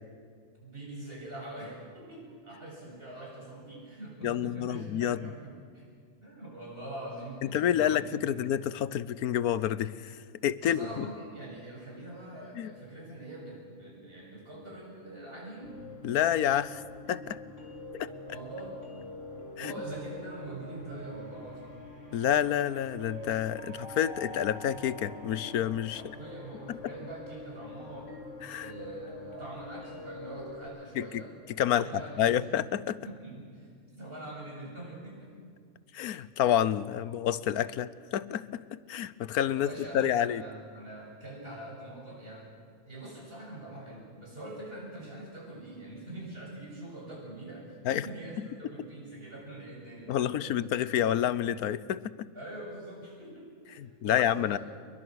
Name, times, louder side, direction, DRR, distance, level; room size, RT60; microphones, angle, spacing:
voice 1, 0.6-5.8 6.2-8.5 10.6-15.8 18.3-18.8 19.6-21.8 25.9-28.1 28.6-31.3 31.7-32.6 33.0-33.7 34.0-35.3 39.2-42.5 42.8-50.4 52.3-54.6, right 1 dB, 40° right, -3 dB, 8.2 m, -43 dB
voice 2, 4.2-5.2 7.4-11.1 12.6-12.7 16.0-16.8 17.1-17.4 17.9-18.1 19.6-19.7 22.1-26.0 28.4-28.7 31.0-31.2 31.5-31.9 32.2-33.0 35.9-39.7 39.9-40.4 47.8-48.1 50.1-52.0 53.8-54.6, left 10 dB, 85° left, 18 dB, 1.3 m, -29 dB
sound 1, 15.6-30.6, left 1 dB, 55° left, 3.5 m, -45 dB
28.5 x 22.0 x 6.4 m, 2.2 s
omnidirectional pair, 1.5 m